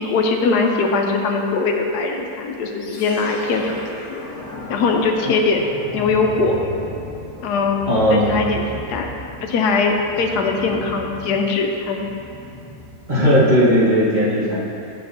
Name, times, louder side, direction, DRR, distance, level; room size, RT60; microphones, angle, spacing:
voice 1, 0.0-3.7 4.1-4.3 4.7-6.6 7.4-7.8 8.1-9.1 9.4-12.1, left 4 dB, 85° left, 2 dB, 1.2 m, -21 dB
sound 1, 2.8-13.9, left 1 dB, 65° left, 1.2 m, -36 dB
voice 2, 7.9-8.5 13.1-14.6, equal, 30° right, -10 dB, 1.4 m, -16 dB
8.7 x 6.2 x 2.7 m, 2.8 s
omnidirectional pair, 1.7 m